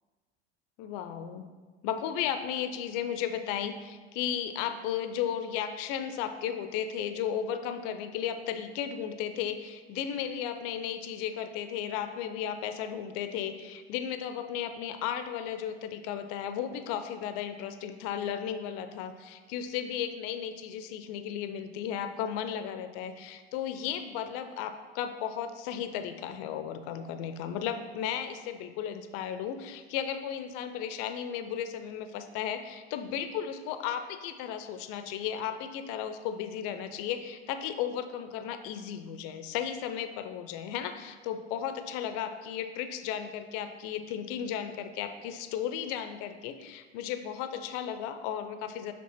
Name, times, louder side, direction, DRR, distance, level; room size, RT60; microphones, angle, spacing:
voice 1, 0.8-1.5 1.8-48.9, left 9 dB, 45° left, 9 dB, 0.6 m, -35 dB
7.4 x 3.5 x 4.3 m, 1.4 s
figure-of-eight pair, 80°, 33 cm